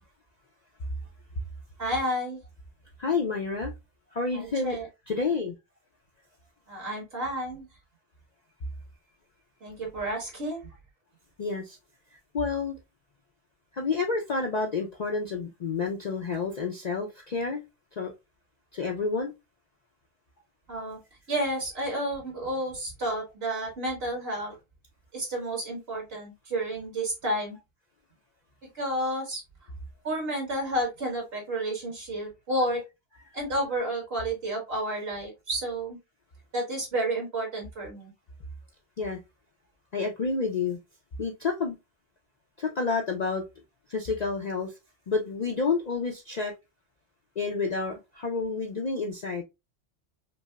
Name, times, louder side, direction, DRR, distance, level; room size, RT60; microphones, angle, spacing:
voice 1, 1.8-2.4 4.3-4.9 6.7-7.7 9.6-10.7 20.7-21.0 21.3-24.6 25.1-27.6 28.8-29.4 30.0-32.8 33.3-36.0 36.5-38.1, right 1 dB, 55° right, 1.8 m, -31 dB
voice 2, 3.0-3.7 4.1-4.8 5.1-5.5 11.4-11.8 12.3-12.8 13.8-17.6 18.0-18.1 18.7-19.3 39.0-39.2 39.9-40.8 41.2-41.7 42.6-43.4 43.9-44.7 45.1-46.5 47.4-49.4, left 4 dB, 50° left, 0.5 m, -29 dB
5.1 x 2.0 x 2.2 m
omnidirectional pair, 1.2 m